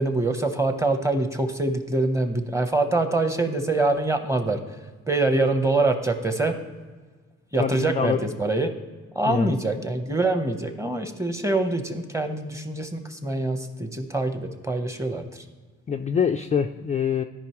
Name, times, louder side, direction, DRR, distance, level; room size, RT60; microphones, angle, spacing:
voice 1, 0.0-4.6 5.1-6.5 7.5-8.7 9.1-15.4, right 2 dB, 10° right, 7 dB, 0.9 m, -24 dB
voice 2, 7.6-8.2 9.3-9.6 15.9-17.2, left 7 dB, 25° left, 5 dB, 0.3 m, -25 dB
13.5 x 5.2 x 3.0 m, 1.4 s
cardioid pair, 90°, 30 cm